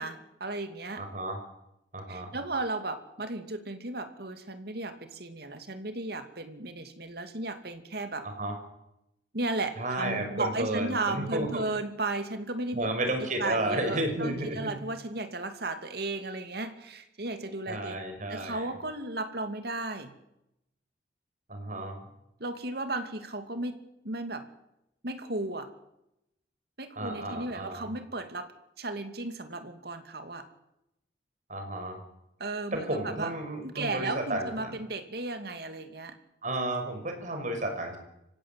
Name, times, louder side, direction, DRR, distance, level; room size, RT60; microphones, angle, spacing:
voice 1, 0.0-1.1 2.1-8.3 9.3-12.9 13.4-18.0 18.3-20.1 22.4-23.8 24.0-24.5 25.0-25.7 26.8-28.5 28.8-30.4 32.4-33.3 33.6-36.2, right 2 dB, 65° right, 8 dB, 2.6 m, -35 dB
voice 2, 1.0-1.4 1.9-2.3 8.2-8.6 9.8-11.6 12.7-14.7 17.7-18.7 21.5-22.0 27.0-27.9 31.5-32.0 32.7-34.7 36.4-38.0, right 1 dB, 45° right, 5 dB, 5.6 m, -32 dB
25.0 x 16.0 x 9.3 m, 0.85 s
head